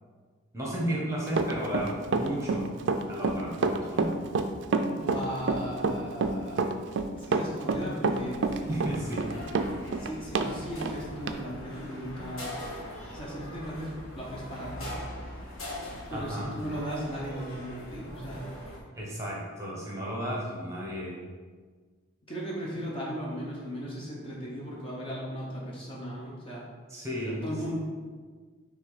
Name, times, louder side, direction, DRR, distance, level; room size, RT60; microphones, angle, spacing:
voice 1, 0.5-2.7 3.1-4.2 8.7-9.4 16.1-16.5 18.9-21.2 26.9-27.5, right 1 dB, 15° right, -4 dB, 1.2 m, -33 dB
Run, 1.3-10.5 10.8-10.9 11.3-11.4, right 4 dB, 55° right, 0.4 m, -27 dB
voice 2, 4.7-8.4 9.9-12.6 13.1-14.9 15.3-15.4 16.1-18.5 22.3-26.7 27.3-27.7, equal, 25° left, -4 dB, 0.8 m, -37 dB
sound 1, 8.1-18.8, left 1 dB, 80° left, 1.5 m, -42 dB
5.9 x 3.4 x 4.8 m, 1.5 s
head